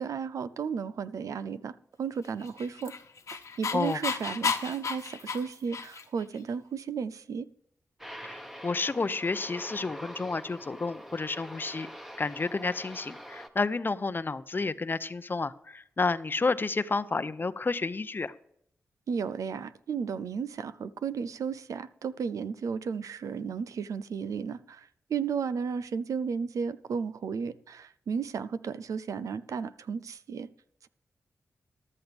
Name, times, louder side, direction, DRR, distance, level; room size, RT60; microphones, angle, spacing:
voice 1, 0.0-1.7 2.0-2.9 3.3-7.5 19.1-30.5, right 6 dB, 80° right, 14 dB, 0.5 m, -34 dB
Dog, 2.4-6.2, left 5 dB, 70° left, 1.2 m, -33 dB
Aircraft, 8.0-13.5, equal, 5° right, 1.2 m, -44 dB
voice 2, 8.2-11.9 12.2-18.3, left 3 dB, 40° left, 14 dB, 0.7 m, -30 dB
14.0 x 11.5 x 3.5 m, 0.72 s
cardioid pair, 60°, 6 cm